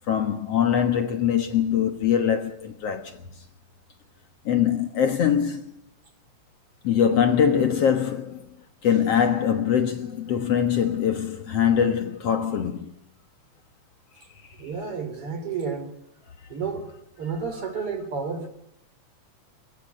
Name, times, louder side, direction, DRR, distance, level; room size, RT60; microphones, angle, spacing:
voice 1, 0.1-3.2 4.5-5.6 6.8-8.5 8.8-12.9, left 8 dB, 60° left, 2.2 m, -23 dB
voice 2, 14.6-15.9 16.5-16.9 17.2-18.5, right 5 dB, 45° right, 4.2 m, -31 dB
22.5 x 22.0 x 9.5 m
omnidirectional pair, 3.5 m